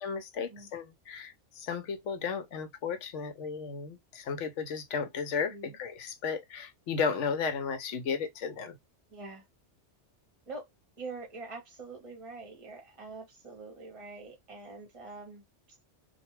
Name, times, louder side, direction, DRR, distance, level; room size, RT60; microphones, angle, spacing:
voice 1, 0.0-8.7, left 5 dB, 90° left, 1.0 m, -34 dB
voice 2, 9.1-9.4 10.5-10.7 11.0-15.4, right 3 dB, 35° right, 0.7 m, -44 dB
2.3 x 2.2 x 3.0 m
omnidirectional pair, 1.2 m